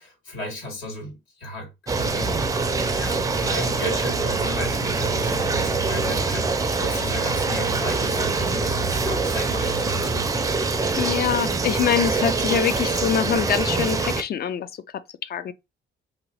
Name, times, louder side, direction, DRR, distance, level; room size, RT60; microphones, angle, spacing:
voice 1, 0.0-2.4 3.0-10.3, equal, 80° left, 1.9 m, -34 dB
sound 1, 1.9-14.2, right 3 dB, 15° right, 0.4 m, -24 dB
voice 2, 11.0-14.7 14.9-15.5, left 8 dB, 50° left, 0.4 m, -24 dB
2.9 x 2.0 x 4.0 m
cardioid pair, 90°, 20 cm